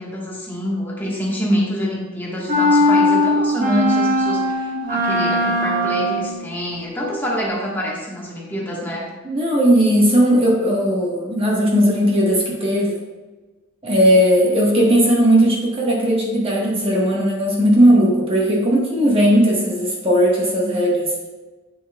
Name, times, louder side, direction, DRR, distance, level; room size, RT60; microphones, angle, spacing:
voice 1, 0.0-9.1, equal, 10° left, -3 dB, 1.3 m, -26 dB
sound 1, 2.5-6.4, left 1 dB, 40° right, 1.6 m, -19 dB
voice 2, 9.2-13.0 13.8-21.1, equal, 25° right, -3 dB, 1.2 m, -17 dB
8.2 x 7.0 x 2.3 m, 1.2 s
head